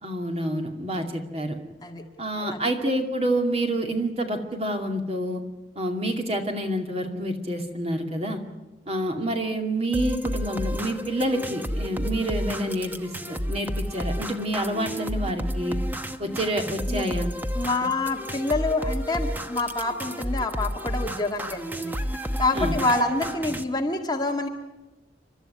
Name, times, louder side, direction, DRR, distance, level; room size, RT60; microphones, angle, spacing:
voice 1, 0.0-1.6 2.2-5.4 5.8-8.4 8.9-15.8 16.2-17.3 17.8-17.9 22.5-22.8, right 1 dB, 35° right, 4 dB, 2.4 m, -28 dB
sound 1, 9.9-23.6, equal, 10° right, 0.9 m, -31 dB
voice 2, 17.5-21.9 22.4-24.5, left 2 dB, 20° left, 2 dB, 1.8 m, -27 dB
29.5 x 12.5 x 9.7 m, 1.0 s
head